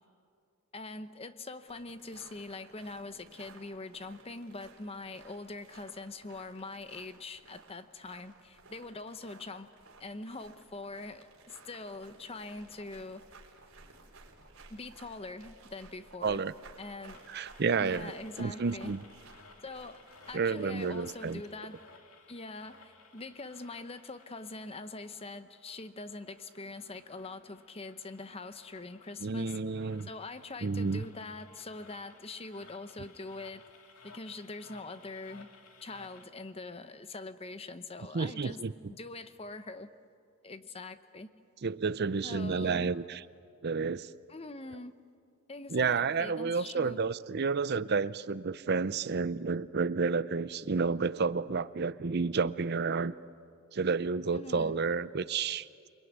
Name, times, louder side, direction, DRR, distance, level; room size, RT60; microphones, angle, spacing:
voice 1, 0.7-9.7 10.0-13.2 14.7-16.4 16.8-17.2 17.8-18.9 19.6-21.8 22.3-29.6 30.0-33.7 34.0-35.5 35.8-38.6 38.9-39.9 40.4-41.3 42.2-42.9 44.3-45.0 45.5-47.0 54.3-54.8, left 3 dB, 25° left, 11 dB, 0.8 m, -43 dB
sound 1, 1.7-21.3, right 3 dB, 65° right, 4.4 m, -56 dB
voice 2, 16.2-16.5 17.3-18.1 18.4-19.0 20.3-21.4 29.2-30.1 30.6-31.0 38.1-38.7 41.6-43.2 43.6-44.1 45.7-53.1 53.7-55.7, right 4 dB, 50° right, 15 dB, 0.6 m, -30 dB
sound 2, 17.1-36.3, left 4 dB, 80° left, 2.4 m, -58 dB
28.5 x 21.5 x 9.5 m, 2.4 s
head